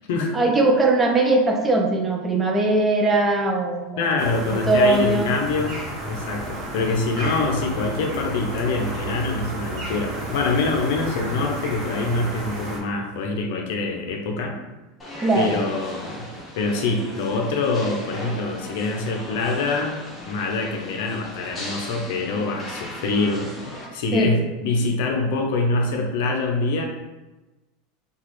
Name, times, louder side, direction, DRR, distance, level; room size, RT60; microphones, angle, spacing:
voice 1, 0.3-4.1 4.5-5.3 15.2-15.6 24.1-24.3, right 2 dB, 20° right, 2 dB, 0.5 m, -20 dB
voice 2, 4.0-5.8 6.1-14.6 15.3-16.2 16.5-20.0 20.3-23.5 23.9-26.8, left 3 dB, 70° left, 2 dB, 0.5 m, -25 dB
sound 1, 4.2-12.8, right 2 dB, 40° right, 0.9 m, -32 dB
sound 2, 15.0-23.8, equal, 15° left, 1.0 m, -37 dB
2.9 x 2.3 x 3.1 m, 1.1 s
hypercardioid pair, 100°, 0 cm